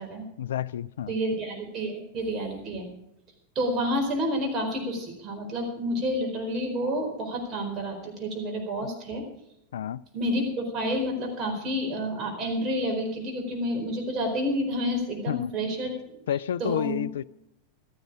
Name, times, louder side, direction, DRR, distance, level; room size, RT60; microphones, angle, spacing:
voice 1, 0.4-1.1 9.7-10.0 15.3-15.5 16.3-17.2, left 10 dB, 60° left, 0.4 m, -30 dB
voice 2, 1.1-2.9 3.5-9.2 10.1-17.0, equal, 30° right, 4.6 m, -29 dB
15.5 x 13.5 x 4.9 m
figure-of-eight pair, 90°, 0 cm